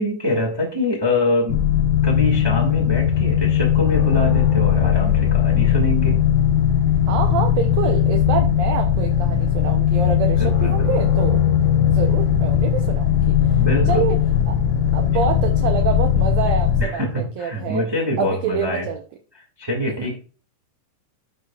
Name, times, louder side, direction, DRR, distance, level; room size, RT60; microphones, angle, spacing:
voice 1, 0.0-1.6 2.0-6.2 10.4-10.9 13.6-14.1 16.8-18.9 19.6-20.2, left 1 dB, 45° right, -2 dB, 0.3 m, -24 dB
sound 1, 1.5-16.8, left 9 dB, 80° left, 2.5 m, -18 dB
voice 2, 7.1-11.4 11.9-14.2 14.5-14.6 14.9-17.0 17.4-17.8 18.2-19.0 20.0-20.1, right 7 dB, 85° right, 5 dB, 1.5 m, -26 dB
12.5 x 4.5 x 2.3 m, 0.38 s
omnidirectional pair, 3.9 m